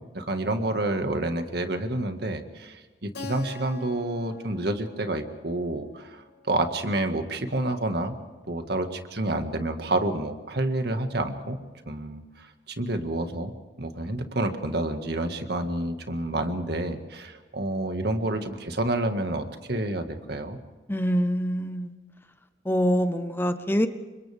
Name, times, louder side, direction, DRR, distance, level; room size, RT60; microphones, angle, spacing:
voice 1, 0.0-6.2 6.5-8.2 8.5-11.6 11.9-13.5 13.8-20.6, right 1 dB, 60° right, 6 dB, 1.9 m, -29 dB
Keyboard (musical), 3.1-7.7, left 4 dB, 60° left, 1.3 m, -45 dB
voice 2, 20.9-21.9 22.6-23.9, equal, 10° left, 9 dB, 0.8 m, -25 dB
29.5 x 25.5 x 3.6 m, 1.3 s
head